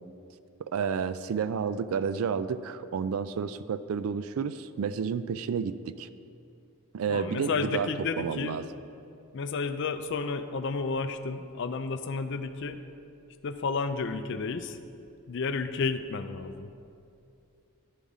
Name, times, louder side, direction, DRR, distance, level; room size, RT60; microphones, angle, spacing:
voice 1, 0.6-6.1 6.9-7.9 8.2-8.7, right 6 dB, 70° right, 13 dB, 0.3 m, -31 dB
voice 2, 7.1-8.6 9.3-12.8 13.4-14.8 15.3-16.7, left 4 dB, 55° left, 9 dB, 0.4 m, -31 dB
10.5 x 4.9 x 5.4 m, 2.6 s
head